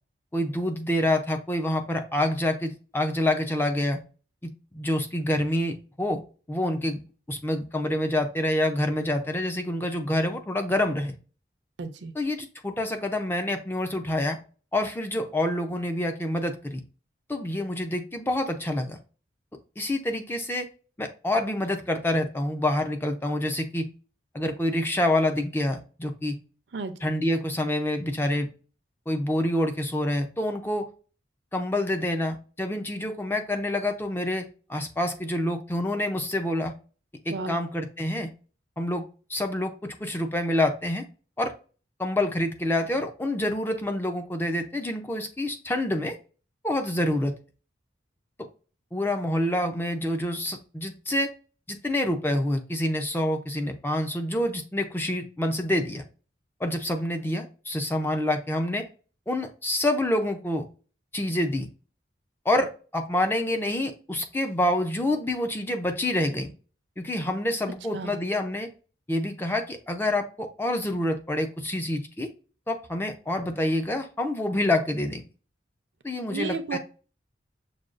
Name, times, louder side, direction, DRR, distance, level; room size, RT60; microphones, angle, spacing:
voice 1, 0.3-4.0 4.4-6.2 6.5-7.0 7.3-11.2 12.1-14.4 14.7-16.8 17.3-19.0 19.8-20.7 21.0-23.9 24.3-26.3 27.0-28.5 29.1-30.9 31.5-36.7 37.3-38.3 38.8-39.0 39.3-41.1 41.4-41.5 42.0-46.2 46.6-47.3 48.9-51.3 51.7-56.0 56.6-58.9 59.3-60.7 61.1-61.7 62.5-66.5 67.0-68.7 69.1-72.3 72.7-75.2 76.0-76.8, left 1 dB, 10° left, 5 dB, 0.4 m, -27 dB
voice 2, 11.8-12.1 26.7-26.9 37.3-37.6 67.9-68.1 76.3-76.8, right 4 dB, 70° right, 8 dB, 0.5 m, -32 dB
6.2 x 2.3 x 2.4 m, 0.36 s
head